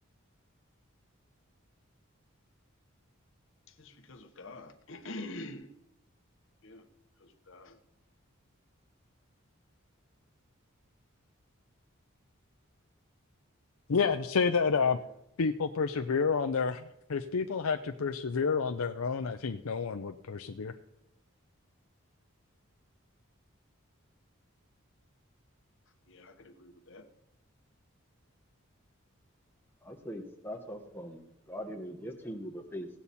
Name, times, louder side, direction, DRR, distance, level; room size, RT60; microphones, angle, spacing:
voice 1, 3.7-5.7 6.6-6.9 7.2-7.8 14.9-15.0 26.1-27.1, left 2 dB, 60° left, 7 dB, 1.1 m, -46 dB
voice 2, 13.9-15.0 15.4-20.7, left 5 dB, 80° left, 6 dB, 0.6 m, -29 dB
voice 3, 29.8-32.9, equal, 10° left, 3 dB, 1.4 m, -41 dB
17.5 x 8.3 x 4.2 m, 0.82 s
head